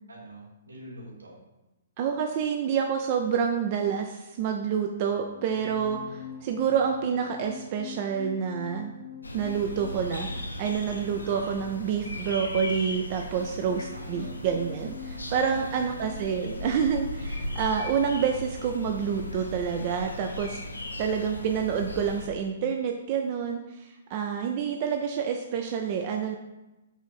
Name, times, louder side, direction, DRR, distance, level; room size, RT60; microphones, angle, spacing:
voice 1, 0.1-1.4 13.9-14.4 15.3-15.8, right 1 dB, 85° right, -4 dB, 1.5 m, -45 dB
voice 2, 2.0-8.9 9.3-20.6 21.0-26.4, right 7 dB, 40° right, 4 dB, 0.3 m, -28 dB
sound 1, 5.1-21.7 22.0-22.3, left 6 dB, 35° left, 0.7 m, -45 dB
sound 2, 9.2-22.3, left 1 dB, 90° left, 0.5 m, -37 dB
4.9 x 2.6 x 4.1 m, 1.0 s
figure-of-eight pair, 120°, 0 cm